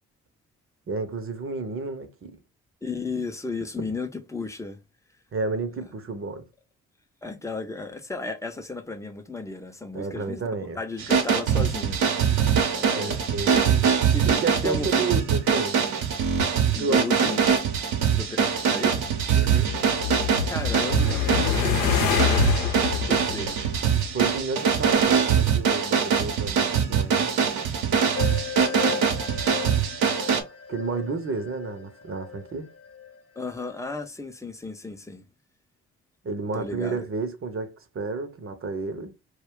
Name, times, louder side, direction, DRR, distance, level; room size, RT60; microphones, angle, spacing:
voice 1, 0.9-2.4 3.8-3.9 5.3-6.4 9.9-10.8 13.0-13.9 14.3-15.8 16.8-17.4 19.3-19.7 24.1-27.3 27.7-28.0 30.2-32.7 36.2-39.1, right 3 dB, 35° right, 0.8 m, -31 dB
voice 2, 2.8-4.8 7.2-10.5 10.8-13.3 14.1-14.3 14.6-15.1 16.7-17.6 18.1-19.1 20.5-23.7 33.4-35.2 36.5-37.0, left 3 dB, 10° left, 0.6 m, -34 dB
sound 1, 11.0-30.4, right 7 dB, 70° right, 0.8 m, -23 dB
sound 2, 18.9-24.4, left 8 dB, 75° left, 0.7 m, -26 dB
sound 3, 28.1-33.9, left 8 dB, 40° left, 1.0 m, -37 dB
2.3 x 2.3 x 3.6 m
hypercardioid pair, 40°, 37 cm